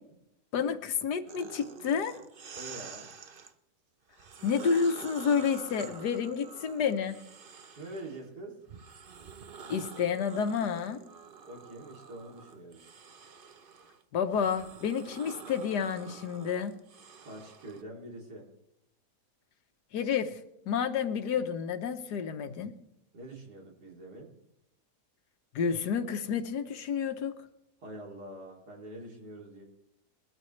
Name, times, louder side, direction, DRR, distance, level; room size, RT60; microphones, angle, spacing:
voice 1, 0.5-2.2 4.4-7.2 9.7-11.0 14.1-16.8 19.9-20.4 20.7-22.7 25.5-27.3, left 6 dB, 85° left, 9 dB, 1.6 m, -30 dB
sound 1, 1.3-3.5 4.1-8.2 8.7-17.8, right 5 dB, 45° right, 0.8 m, -48 dB
voice 2, 2.5-3.1 7.7-8.6 11.5-12.9 17.2-18.5 23.1-24.3 27.8-29.6, right 1 dB, 75° right, -1 dB, 3.5 m, -45 dB
21.5 x 12.5 x 3.2 m, 0.84 s
omnidirectional pair, 1.7 m